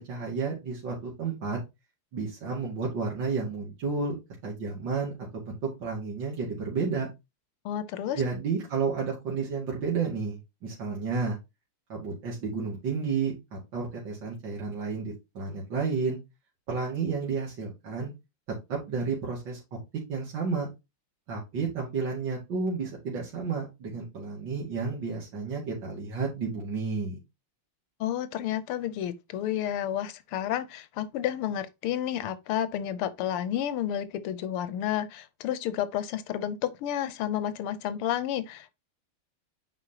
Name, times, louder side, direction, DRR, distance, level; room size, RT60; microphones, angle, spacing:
voice 1, 0.0-1.6 2.1-4.2 4.4-7.1 8.1-11.4 11.9-16.2 16.7-18.1 18.7-19.8 20.1-20.7 21.3-27.2, right 5 dB, 55° right, 2.7 m, -31 dB
voice 2, 7.6-8.2 28.0-38.7, left 11 dB, 80° left, 1.6 m, -31 dB
7.9 x 4.9 x 2.9 m
omnidirectional pair, 2.4 m